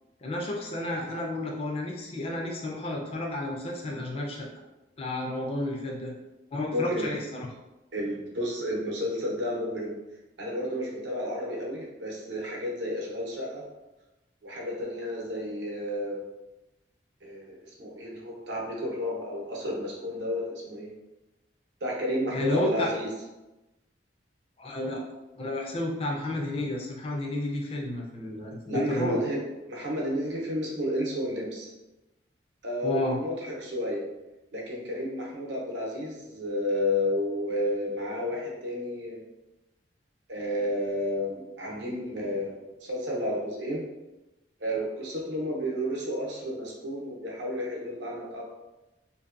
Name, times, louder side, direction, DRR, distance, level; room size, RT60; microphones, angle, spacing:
voice 1, 0.2-4.5 5.0-6.1 6.5-7.5 22.3-22.9 24.6-25.0 25.4-29.2 32.8-33.2, left 1 dB, 30° left, -1 dB, 0.3 m, -31 dB
voice 2, 6.7-7.2 7.9-9.9 10.4-13.6 14.4-16.2 17.2-20.9 21.8-23.2 28.7-31.7 32.6-34.0 34.5-39.2 40.3-43.8 44.6-48.4, left 1 dB, 75° right, -3 dB, 0.7 m, -31 dB
2.6 x 2.2 x 2.4 m, 1.0 s
head